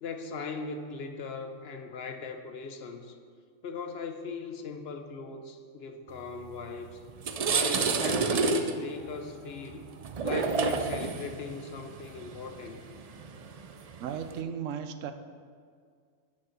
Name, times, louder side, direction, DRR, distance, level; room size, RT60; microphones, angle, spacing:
voice 1, 0.0-3.2 3.6-7.0 7.4-9.9 10.2-12.8, left 4 dB, 60° left, 7 dB, 0.9 m, -38 dB
sound 1, 6.6-6.7 7.1-14.4, right 5 dB, 55° right, 0.4 m, -30 dB
voice 2, 14.0-15.1, right 8 dB, 80° right, 9 dB, 1.0 m, -35 dB
7.1 x 6.6 x 6.8 m, 2.1 s
omnidirectional pair, 1.3 m